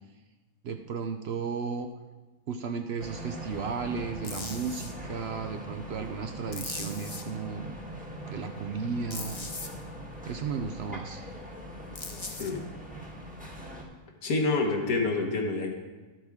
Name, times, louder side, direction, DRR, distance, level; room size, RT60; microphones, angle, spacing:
voice 1, 0.6-1.9 2.5-7.8 8.2-9.4 10.3-11.2, right 5 dB, 60° right, 6 dB, 0.7 m, -34 dB
sound 1, 3.0-13.8, equal, 5° right, 1.2 m, -41 dB
sound 2, 4.2-4.9 6.5-7.2 9.1-9.7 12.0-12.5, left 3 dB, 35° left, 0.5 m, -39 dB
voice 2, 14.2-15.7, left 3 dB, 80° left, 2 dB, 1.7 m, -27 dB
11.5 x 8.0 x 3.6 m, 1.3 s
omnidirectional pair, 1.5 m